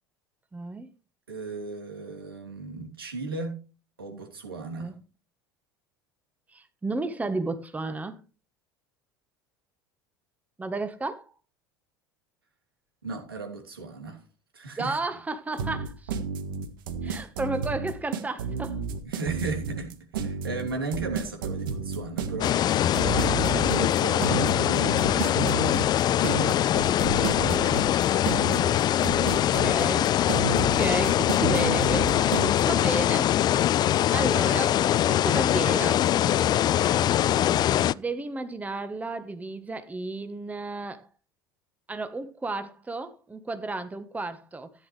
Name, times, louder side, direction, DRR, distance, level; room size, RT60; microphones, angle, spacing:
voice 1, 0.5-0.9 4.8-4.9 6.5-8.2 10.6-11.3 14.8-16.1 17.0-18.8 22.4-22.5 22.9-23.0 26.3-28.0 29.3-30.2 30.4-33.7 34.1-34.8 35.1-36.1 37.9-41.1 41.9-44.7, right 3 dB, 10° right, 1.3 m, -33 dB
voice 2, 1.3-3.6 4.0-4.9 13.0-14.2 14.5-15.0 17.1-17.2 19.0-22.9 23.3-26.3 28.3-28.8, right 3 dB, 85° right, 3.0 m, -36 dB
sound 1, 15.6-32.6, right 6 dB, 70° right, 1.6 m, -31 dB
sound 2, 22.4-37.9, left 12 dB, 35° left, 0.4 m, -23 dB
15.0 x 9.7 x 3.3 m
figure-of-eight pair, 70°, 12 cm